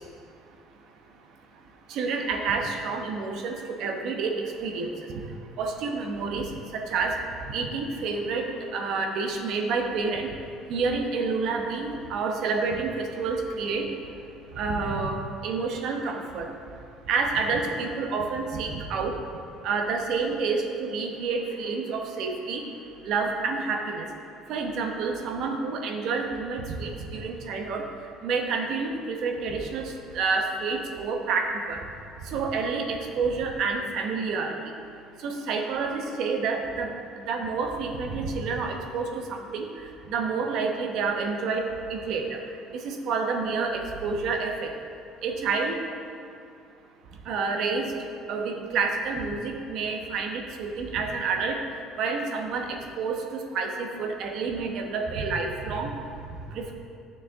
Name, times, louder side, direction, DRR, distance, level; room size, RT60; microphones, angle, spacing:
voice 1, 1.9-5.2 5.6-7.1 7.5-8.4 8.7-10.3 10.7-13.9 14.5-16.5 17.1-19.1 19.6-22.7 23.0-24.1 24.5-27.8 28.2-31.8 32.2-34.5 35.2-36.9 37.1-39.7 40.1-42.4 42.7-44.7 45.2-45.8 47.3-47.9 48.3-51.6 52.0-55.9 56.5-56.7, right 4 dB, 50° right, 2 dB, 0.9 m, -29 dB
12.0 x 6.5 x 3.6 m, 2.5 s
cardioid pair, 175°, 0 cm